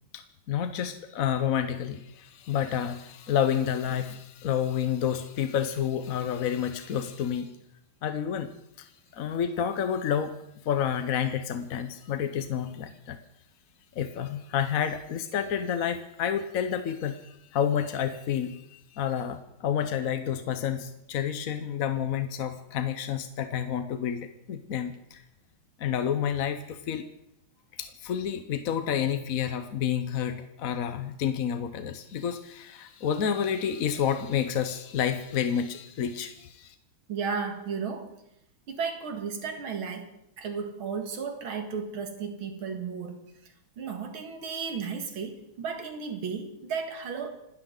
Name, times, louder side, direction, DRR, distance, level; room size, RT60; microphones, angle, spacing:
voice 1, 0.1-7.5 8.0-8.5 8.8-10.3 10.6-13.2 13.9-25.2 25.8-27.1 27.8-36.7, left 8 dB, 55° left, 9 dB, 1.0 m, -29 dB
voice 2, 37.1-38.1 38.7-40.1 40.4-43.2 43.8-47.3, right 5 dB, 70° right, 6 dB, 2.6 m, -34 dB
27.5 x 12.5 x 3.9 m, 0.80 s
omnidirectional pair, 2.3 m